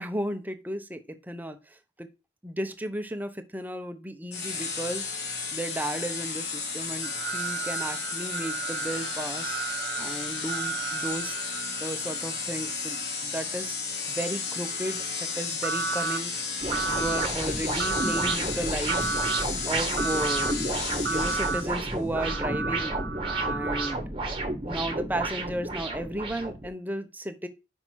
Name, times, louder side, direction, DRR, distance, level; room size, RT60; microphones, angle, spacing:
voice 1, 0.0-2.1 2.4-5.1 5.5-9.6 10.0-11.4 11.8-13.8 14.1-16.3 16.9-19.1 19.7-20.6 21.1-23.0 23.4-24.0 24.7-27.5, right 1 dB, 10° right, 8 dB, 0.7 m, -34 dB
sound 1, 4.3-21.9, left 5 dB, 65° left, 1.7 m, -33 dB
sound 2, 7.0-12.4 15.6-16.2 16.7-17.3 17.8-18.4 18.9-19.4 20.0-20.5 21.0-21.6 22.1-24.0, right 5 dB, 80° right, 0.5 m, -32 dB
sound 3, 16.6-26.7, right 2 dB, 30° right, 1.1 m, -31 dB
5.7 x 5.4 x 4.5 m, 0.28 s
head